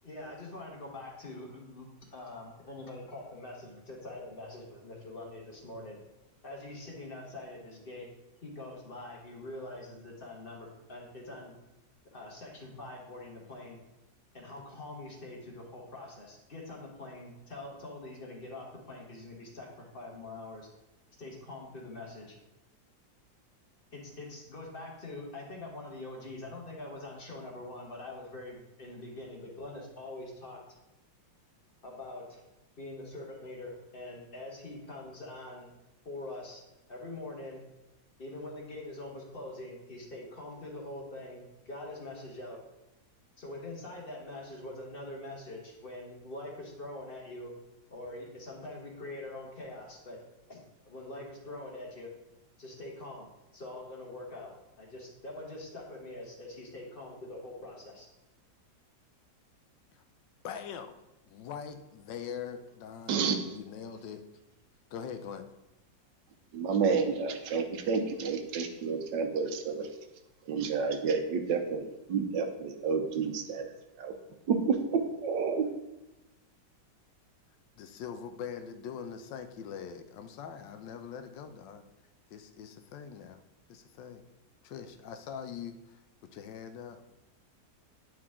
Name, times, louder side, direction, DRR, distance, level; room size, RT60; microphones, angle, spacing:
voice 1, 0.0-1.9 2.1-6.0 6.4-8.1 8.4-11.6 12.1-13.8 14.3-20.7 21.2-22.3 23.9-30.6 31.8-32.4 32.8-35.7 36.0-36.6 36.9-37.6 38.2-42.6 43.4-47.5 47.9-50.2 50.5-52.1 52.6-53.3 53.5-54.5 54.8-58.1, left 2 dB, 35° left, 0 dB, 1.2 m, -44 dB
voice 2, 60.4-61.0 61.3-64.2 64.9-65.5 77.7-81.8 82.3-83.4 83.7-84.2 84.6-86.0 86.3-87.0, left 7 dB, 85° left, 9 dB, 1.3 m, -42 dB
voice 3, 63.1-63.6 66.5-69.9 70.5-73.7 74.0-74.1 74.5-75.7, right 5 dB, 80° right, 6 dB, 1.4 m, -30 dB
8.8 x 4.7 x 3.6 m, 0.96 s
omnidirectional pair, 1.9 m